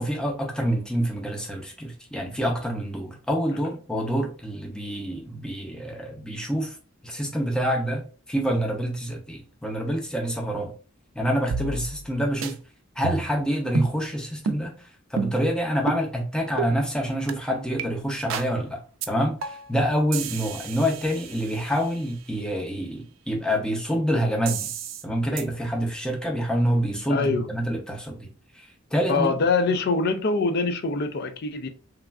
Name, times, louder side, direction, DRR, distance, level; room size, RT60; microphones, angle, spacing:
voice 1, 0.0-6.8 7.0-10.7 11.2-12.6 13.0-18.8 19.1-24.7 25.0-28.3 28.5-28.7 28.9-29.3, equal, 5° left, 0.5 m, -27 dB
sound 1, 11.5-12.1 12.4-12.5 13.0-13.4 13.7-13.9 14.5-14.6 15.2-15.5 15.9-16.0 16.6-16.7 17.3-17.4 17.8-17.9 18.3-18.5 19.0-19.1 19.4-19.7 20.1-22.0 24.5-25.0 25.4-25.5, right 5 dB, 75° right, 0.4 m, -30 dB
voice 2, 27.1-27.5 29.1-31.7, left 3 dB, 50° left, 0.4 m, -24 dB
3.1 x 2.3 x 2.3 m
head